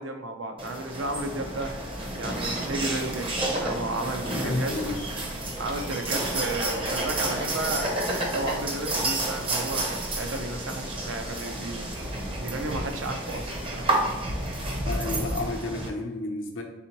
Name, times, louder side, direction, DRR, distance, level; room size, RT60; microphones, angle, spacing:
voice 1, 0.0-1.7 2.2-3.3 3.6-4.8 5.6-13.9, right 2 dB, 75° right, 5 dB, 0.5 m, -33 dB
sound 1, 0.6-15.9, right 2 dB, 30° right, 0.6 m, -31 dB
Church bell, 0.9-15.8, equal, 5° left, 0.3 m, -41 dB
voice 2, 4.3-5.1 14.8-16.6, left 2 dB, 85° left, 2 dB, 0.7 m, -31 dB
4.1 x 3.6 x 2.9 m, 1.1 s
head